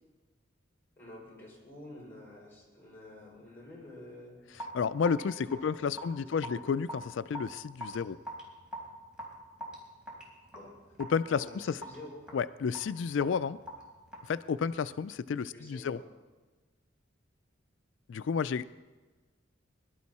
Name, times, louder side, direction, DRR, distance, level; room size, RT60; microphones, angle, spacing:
voice 1, 1.0-4.3 5.5-5.8 6.1-6.2 6.5-6.6 10.5-10.7 11.4-12.2 15.5-16.1, left 1 dB, 10° left, -6 dB, 5.8 m, -49 dB
Raindrop / Drip, 4.5-15.1, equal, 5° right, 3.9 m, -45 dB
voice 2, 4.7-8.2 11.1-11.8 12.3-13.6 14.3-16.0 18.1-18.7, left 6 dB, 70° left, 14 dB, 0.4 m, -31 dB
21.5 x 12.0 x 4.2 m, 1.3 s
head